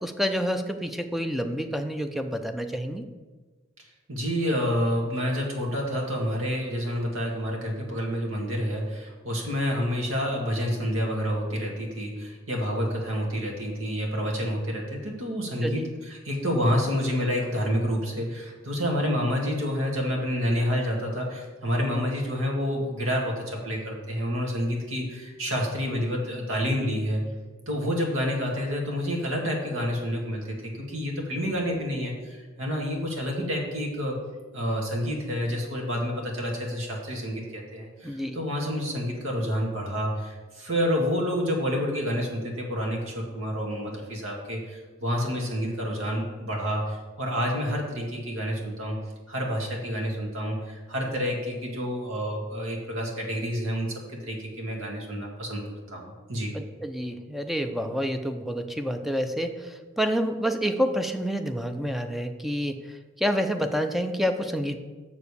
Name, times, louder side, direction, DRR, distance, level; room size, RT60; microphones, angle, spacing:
voice 1, 0.0-3.0 15.6-15.8 38.0-38.4 56.5-64.8, equal, ahead, 7 dB, 0.5 m, -28 dB
voice 2, 4.1-27.2 27.7-34.2 34.5-49.0 49.3-56.5, equal, 85° right, 0 dB, 1.9 m, -29 dB
6.8 x 4.9 x 6.8 m, 1.3 s
head